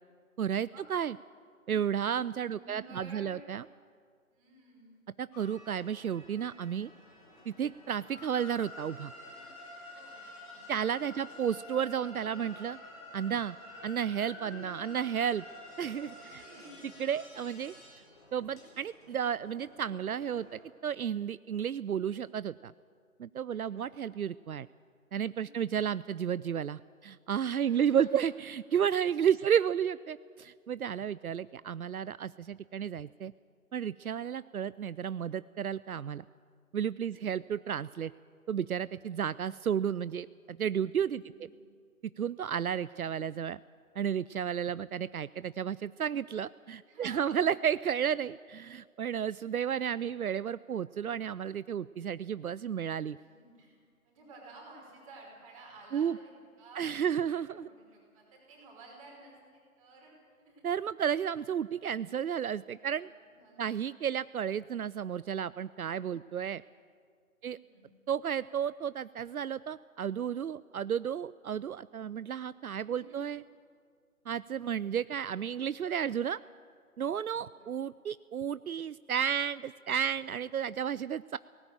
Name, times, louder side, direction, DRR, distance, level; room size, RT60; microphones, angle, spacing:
voice 1, 0.4-1.2 1.7-3.6 5.2-6.9 7.5-9.1 10.7-12.8 13.1-13.6 13.8-15.4 15.8-16.4 17.0-17.7 18.3-22.7 23.2-24.7 25.1-33.3 33.7-36.2 36.7-38.1 38.5-41.2 42.2-43.6 44.0-53.2 55.9-56.2 56.8-57.7 60.6-63.1 63.6-66.6 67.4-67.6 68.1-73.4 74.3-76.4 77.0-81.4, right 8 dB, 80° right, 18 dB, 0.5 m, -32 dB
voice 2, 2.4-3.4 4.3-4.9 9.9-10.7 11.1-11.2 16.2-17.0 17.4-17.5 23.5-23.9 25.4-25.6 27.6-28.1 29.4-29.5 37.0-37.2 41.2-41.5 46.9-47.5 53.1-53.8 54.0-60.1 60.4-60.6 62.8-63.7 67.4-68.0 72.8-73.3 77.3-77.7, right 2 dB, 25° right, -2 dB, 5.0 m, -54 dB
sound 1, 5.3-20.6, left 2 dB, 25° left, 4.0 m, -50 dB
18.0 x 17.0 x 9.1 m, 2.1 s
figure-of-eight pair, 150°, 43 cm